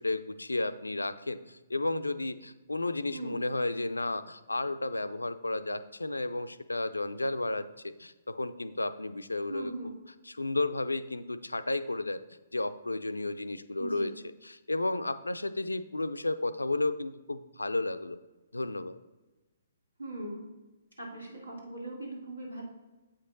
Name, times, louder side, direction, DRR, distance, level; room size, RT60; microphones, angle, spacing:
voice 1, 0.0-9.7 10.3-12.2 12.5-14.1 14.4-18.2 18.5-19.0, left 2 dB, 75° left, 12 dB, 0.4 m, -33 dB
voice 2, 3.1-3.5 9.5-9.9 13.8-14.1 20.0-20.5 21.0-22.6, right 1 dB, 80° right, -1 dB, 2.0 m, -39 dB
8.0 x 5.2 x 3.9 m, 1.2 s
figure-of-eight pair, 125°, 0 cm